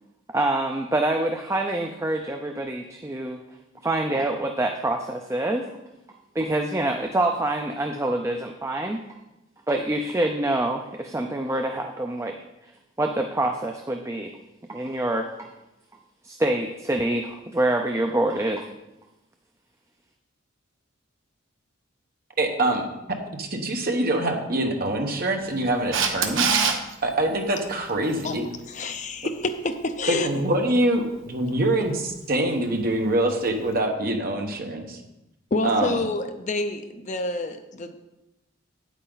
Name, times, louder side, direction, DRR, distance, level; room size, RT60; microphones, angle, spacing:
voice 1, 0.3-3.4 3.8-5.7 6.4-9.2 9.7-12.7 13.0-14.3 14.7-15.5 16.2-18.7, right 1 dB, 15° right, 4 dB, 0.4 m, -26 dB
voice 2, 22.4-22.9 23.4-26.5 27.0-28.4 30.1-35.0 35.6-36.0, right 1 dB, 45° right, 3 dB, 1.1 m, -24 dB
Camera, 25.9-26.8 33.5-33.6, right 6 dB, 70° right, 0.9 m, -21 dB
voice 3, 28.7-30.3 35.5-38.0, left 2 dB, 35° left, 8 dB, 0.5 m, -28 dB
8.9 x 8.3 x 3.9 m, 0.96 s
head